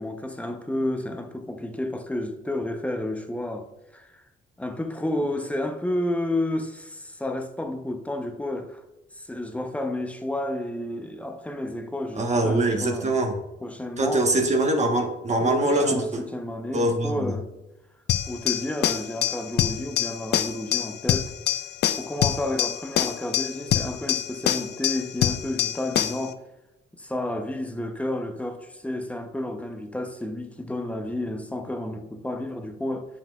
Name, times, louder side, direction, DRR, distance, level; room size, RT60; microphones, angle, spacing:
voice 1, 0.0-3.7 3.9-4.2 4.6-8.8 9.2-13.2 13.6-14.3 15.4-17.5 18.3-21.3 22.0-26.4 27.0-33.1, left 1 dB, 5° left, 0.7 m, -31 dB
voice 2, 12.2-13.3 14.0-16.2 16.7-17.2, right 2 dB, 35° right, 1.2 m, -23 dB
sound 1, 18.1-26.3, left 11 dB, 60° left, 0.4 m, -26 dB
7.0 x 5.8 x 2.4 m
cardioid pair, 90°, 20 cm